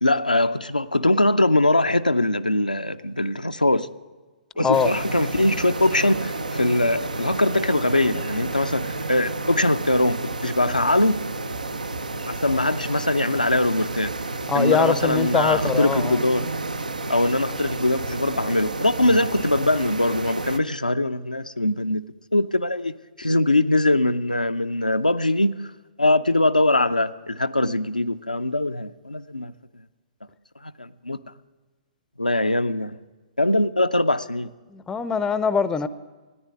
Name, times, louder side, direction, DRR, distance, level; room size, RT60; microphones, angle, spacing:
voice 1, 0.0-3.9 4.6-11.3 12.3-14.2 14.5-16.5 17.1-22.0 22.3-25.6 26.0-29.5 30.6-31.2 32.2-33.0 33.4-34.5, left 1 dB, 90° left, 8 dB, 0.5 m, -22 dB
sound 1, 4.7-20.6, right 3 dB, 75° right, 0.8 m, -31 dB
voice 2, 14.5-16.2 34.7-35.9, left 6 dB, 10° left, 15 dB, 0.5 m, -23 dB
14.0 x 10.0 x 9.4 m, 1.3 s
figure-of-eight pair, 115°, 4 cm